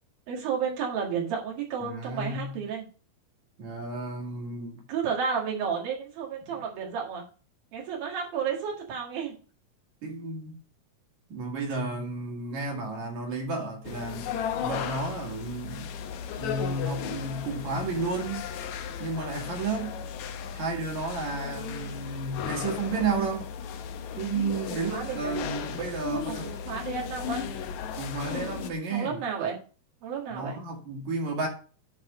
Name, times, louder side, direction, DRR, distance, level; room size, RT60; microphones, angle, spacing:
voice 1, 0.3-2.9 4.9-7.2 7.7-9.3 24.7-25.4 26.1-27.4 28.9-29.6 30.0-30.6, right 6 dB, 75° right, 3.8 m, -32 dB
voice 2, 1.8-2.6 3.6-4.8 6.4-6.5 10.0-10.6 11.3-14.3 14.6-15.9 16.4-18.5 19.0-20.0 20.5-23.5 24.2-26.5 28.0-29.1 30.3-31.5, right 3 dB, 55° right, 3.2 m, -32 dB
sound 1, 13.8-28.7, left 7 dB, 75° left, 1.7 m, -36 dB
10.5 x 4.1 x 5.0 m
omnidirectional pair, 4.2 m